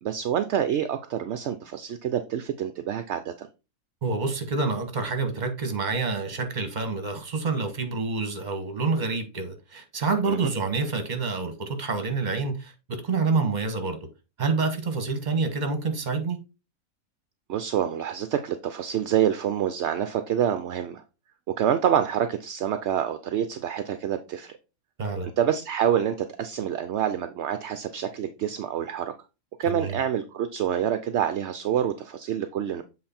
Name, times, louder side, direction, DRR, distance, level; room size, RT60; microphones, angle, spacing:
voice 1, 0.0-3.5 10.3-10.5 17.5-21.0 21.6-24.6 25.4-29.1 29.6-32.8, right 9 dB, 65° right, 0.8 m, -27 dB
voice 2, 4.0-14.0 14.4-16.4 25.0-25.3 29.7-30.0, right 4 dB, 30° right, 1.3 m, -27 dB
7.7 x 3.9 x 4.3 m
omnidirectional pair, 1.5 m